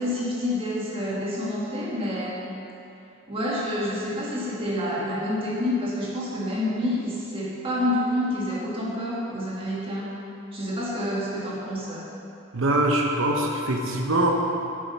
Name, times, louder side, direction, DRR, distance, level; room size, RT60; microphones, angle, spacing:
voice 1, 0.0-2.6 3.3-10.1 10.5-12.0, left 1 dB, 25° right, -6 dB, 1.8 m, -28 dB
voice 2, 12.5-14.3, right 1 dB, 65° right, 0 dB, 0.9 m, -23 dB
8.4 x 7.6 x 5.4 m, 2.8 s
head